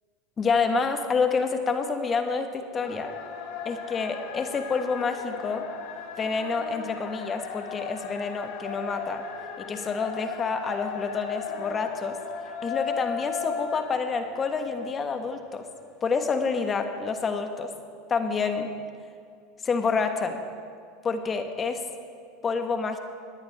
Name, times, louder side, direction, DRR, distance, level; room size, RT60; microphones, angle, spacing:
voice 1, 0.4-3.1 3.6-5.6 6.2-9.2 9.6-12.2 12.6-15.6 16.0-17.7 18.1-18.7 19.6-20.4 21.0-21.8 22.4-23.0, left 5 dB, 30° left, 7 dB, 1.2 m, -28 dB
sound 1, 2.8-15.6, left 6 dB, 60° left, 1.4 m, -37 dB
18.0 x 10.0 x 3.5 m, 2.3 s
hypercardioid pair, 95°, 0 cm